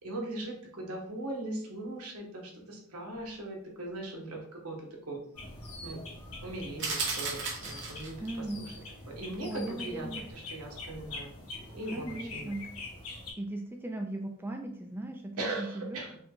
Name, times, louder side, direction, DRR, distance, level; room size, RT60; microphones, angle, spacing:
voice 1, 0.0-4.8 5.1-5.2 5.8-6.0 6.4-8.7 9.1-11.3 11.7-12.5 15.4-16.2, right 2 dB, 80° right, -1 dB, 1.3 m, -39 dB
sound 1, 5.3-13.3, left 2 dB, 80° left, 1.8 m, -44 dB
sound 2, 6.8-8.3, right 4 dB, 55° right, 1.1 m, -34 dB
voice 2, 8.2-8.7 9.5-10.3 11.9-12.6 13.4-16.0, right 1 dB, 10° right, 2 dB, 0.4 m, -38 dB
5.0 x 2.3 x 3.8 m, 0.64 s
head